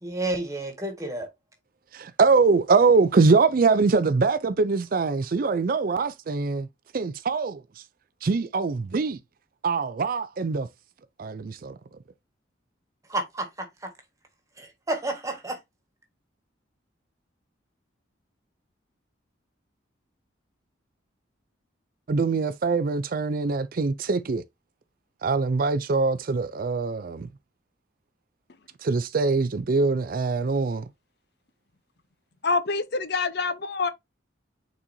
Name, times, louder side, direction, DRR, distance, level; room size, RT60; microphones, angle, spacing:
voice 1, 0.0-1.3 13.1-13.9 14.6-15.6, right 2 dB, 15° right, 1.6 m, -31 dB
voice 2, 1.9-6.7 6.9-7.8 8.2-9.2 9.6-10.7 11.2-11.8 22.1-24.4 25.2-27.3 28.8-30.9, right 4 dB, 50° right, 0.4 m, -23 dB
voice 3, 32.4-33.9, left 4 dB, 55° left, 0.7 m, -26 dB
8.7 x 4.1 x 2.7 m
head